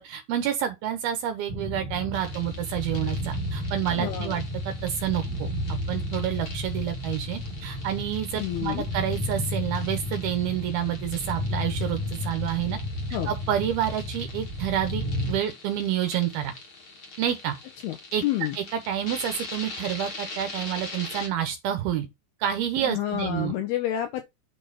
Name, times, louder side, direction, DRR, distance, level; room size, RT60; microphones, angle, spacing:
voice 1, 0.0-5.5 5.9-12.8 13.3-15.0 15.3-16.5 17.2-17.6 18.1-18.2 18.6-22.1 22.4-23.5, right 10 dB, 75° right, 2.4 m, -29 dB
sound 1, 1.5-15.4, left 1 dB, 50° right, 1.5 m, -32 dB
sound 2, 2.1-21.3, left 3 dB, 45° left, 1.7 m, -43 dB
voice 2, 3.9-4.3 8.4-8.9 13.1-13.3 17.8-18.0 18.2-18.6 22.8-24.2, left 12 dB, 80° left, 2.3 m, -29 dB
9.1 x 5.4 x 4.0 m
omnidirectional pair, 5.3 m